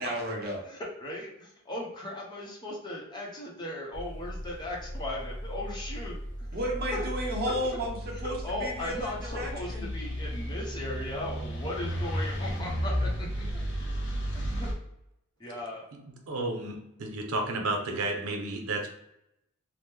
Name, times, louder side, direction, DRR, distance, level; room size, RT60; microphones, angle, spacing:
voice 1, 0.0-0.6 6.5-9.9, equal, 45° right, -1 dB, 0.8 m, -33 dB
voice 2, 0.7-6.1 6.9-7.0 8.4-13.4 14.3-14.7 15.4-15.8, left 1 dB, 20° left, -3 dB, 0.7 m, -37 dB
sound 1, 3.9-14.7, equal, 55° left, 0.7 m, -34 dB
voice 3, 15.9-18.9, right 2 dB, 80° right, 4 dB, 0.6 m, -32 dB
2.9 x 2.1 x 3.4 m, 0.83 s
head